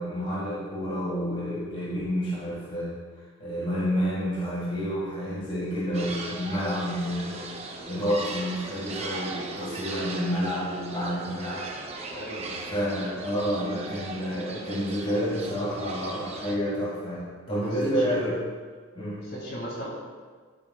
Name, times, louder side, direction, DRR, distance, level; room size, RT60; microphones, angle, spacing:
voice 1, 0.0-3.0 3.4-7.5 7.9-11.7 12.7-18.4 19.0-19.3, equal, 25° left, -8 dB, 1.8 m, -29 dB
sound 1, 5.9-16.6, right 3 dB, 30° right, 0.6 m, -38 dB
voice 2, 12.1-12.6 17.5-17.7 18.0-18.1 19.2-19.9, equal, 50° left, -4 dB, 2.7 m, -37 dB
12.0 x 8.1 x 2.4 m, 1.5 s
head